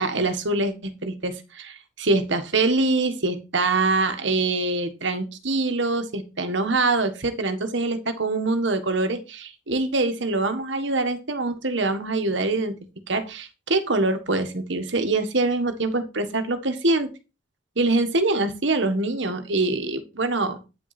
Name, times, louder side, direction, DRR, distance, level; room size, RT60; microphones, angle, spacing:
voice 1, 0.0-12.8 13.1-17.1 17.8-20.6, right 2 dB, 65° right, 7 dB, 1.5 m, -24 dB
9.3 x 6.1 x 4.2 m, 0.27 s
head